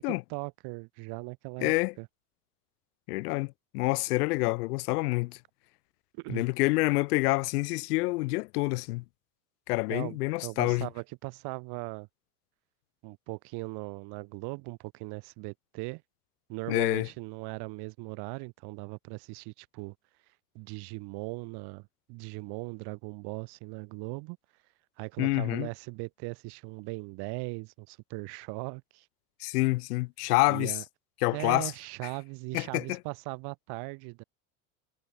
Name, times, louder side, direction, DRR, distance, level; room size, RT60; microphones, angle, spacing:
voice 1, 0.0-2.1 6.1-6.4 9.9-12.1 13.0-16.0 16.5-19.9 20.5-24.4 25.0-29.1 30.5-30.8 31.3-34.2, right 28 dB, 55° right, 1.0 m, -39 dB
voice 2, 1.6-1.9 3.1-5.4 6.3-9.0 9.7-10.9 16.7-17.1 25.2-25.7 29.4-30.7 31.2-31.7 32.5-33.0, left 23 dB, 80° left, 0.7 m, -27 dB
supercardioid pair, 95°, 46 cm